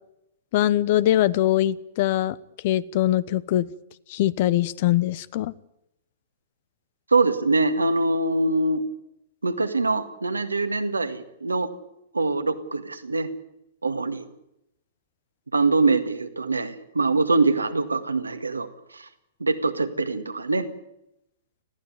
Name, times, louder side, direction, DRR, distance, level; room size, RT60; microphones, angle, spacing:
voice 1, 0.5-2.4 2.6-3.7 4.1-5.5, left 13 dB, 50° left, 20 dB, 0.9 m, -22 dB
voice 2, 7.1-8.8 9.4-11.7 12.1-13.3 13.8-14.2 15.5-18.7 18.9-19.1 19.4-20.7, right 3 dB, 90° right, 8 dB, 1.9 m, -23 dB
20.5 x 15.5 x 9.5 m, 0.83 s
figure-of-eight pair, 110°, 0 cm